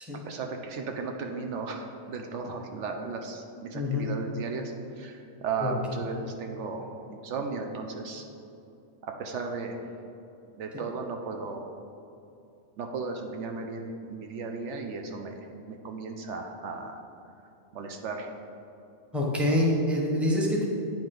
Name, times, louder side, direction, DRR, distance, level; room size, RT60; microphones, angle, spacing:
voice 1, 0.2-8.3 9.0-9.8 10.5-11.7 12.8-17.0 17.7-18.3, right 4 dB, 75° right, 4 dB, 0.9 m, -35 dB
voice 2, 3.7-4.0 5.6-5.7 19.1-20.7, left 1 dB, ahead, -3 dB, 0.9 m, -25 dB
9.0 x 5.0 x 3.8 m, 2.7 s
omnidirectional pair, 1.3 m